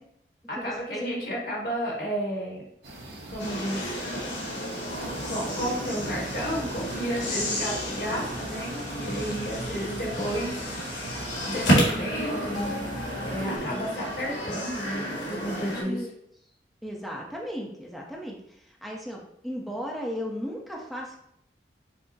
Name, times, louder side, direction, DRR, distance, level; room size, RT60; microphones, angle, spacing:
voice 1, 0.5-2.6 3.3-3.9 5.2-10.9 11.4-12.7 13.3-16.1, equal, 55° left, -3 dB, 1.4 m, -32 dB
sound 1, 2.8-8.6, right 1 dB, 75° right, 1.0 m, -45 dB
sound 2, 3.4-15.8, equal, 85° left, 1.6 m, -31 dB
sound 3, 4.9-13.6, right 2 dB, 45° right, 0.4 m, -39 dB
voice 2, 15.8-16.1 16.8-21.2, equal, ahead, -1 dB, 0.6 m, -36 dB
5.8 x 2.0 x 4.0 m, 0.72 s
head